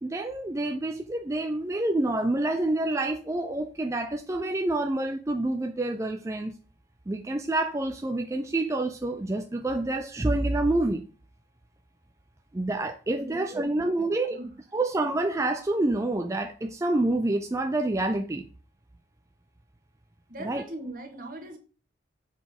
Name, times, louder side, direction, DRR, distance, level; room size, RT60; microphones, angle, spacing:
voice 1, 0.0-6.5 7.1-11.0 12.5-14.4 14.7-18.5 20.4-20.6, right 2 dB, 15° right, 0.4 m, -27 dB
voice 2, 13.2-14.5 20.3-21.6, right 1 dB, 45° right, 1.7 m, -41 dB
7.2 x 4.1 x 5.2 m
head